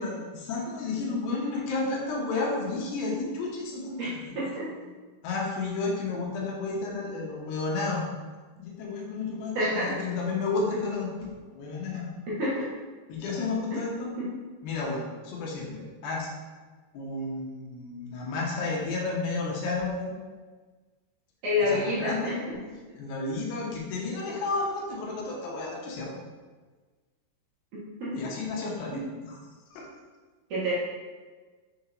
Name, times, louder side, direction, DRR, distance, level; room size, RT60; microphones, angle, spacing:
voice 1, 0.0-4.5 5.2-8.1 8.6-12.1 13.1-14.1 14.6-16.3 16.9-20.1 21.6-22.3 22.9-26.1 28.1-29.4 29.7-29.9, left 3 dB, 80° left, -2 dB, 3.1 m, -32 dB
voice 2, 4.4-4.7 9.6-9.9 12.3-12.6 13.7-13.8 21.4-22.6 27.7-28.2 28.9-29.1 30.5-30.7, left 1 dB, 60° right, -9 dB, 2.3 m, -28 dB
6.7 x 5.3 x 3.0 m, 1.4 s
omnidirectional pair, 4.9 m